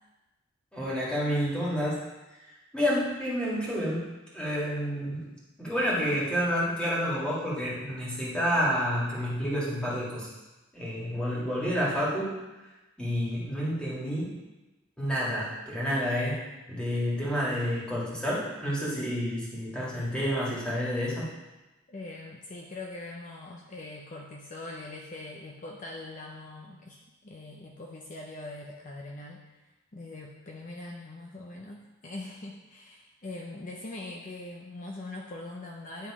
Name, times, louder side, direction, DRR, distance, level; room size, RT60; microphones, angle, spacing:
voice 1, 0.7-2.1 2.7-4.1 4.3-5.2 5.6-10.3 10.7-12.4 13.0-14.4 15.0-16.4 16.7-21.3, equal, 5° left, -7 dB, 2.0 m, -29 dB
voice 2, 21.9-29.4 29.9-36.1, left 2 dB, 40° left, -1 dB, 0.6 m, -42 dB
10.0 x 3.7 x 4.9 m, 1.1 s
head